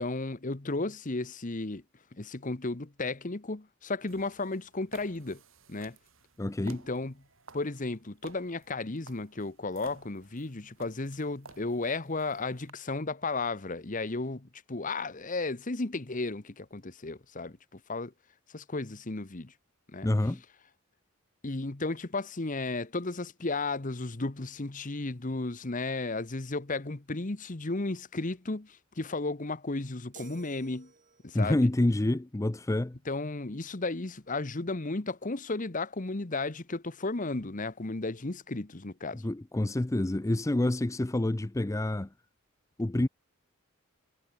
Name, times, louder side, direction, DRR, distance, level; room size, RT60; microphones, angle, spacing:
voice 1, 0.0-1.8 2.1-5.4 5.7-6.0 6.6-7.1 7.5-18.1 18.5-19.5 19.9-20.1 21.4-30.9 31.2-31.7 33.0-39.2, left 3 dB, 40° left, 1.1 m, -34 dB
sound 1, 4.0-12.7, right 4 dB, 65° right, 4.0 m, -54 dB
voice 2, 6.4-6.8 20.0-20.4 31.3-33.0 39.1-42.1 42.8-43.1, left 1 dB, 15° left, 0.5 m, -27 dB
sound 2, 30.1-31.5, right 5 dB, 35° right, 2.5 m, -52 dB
head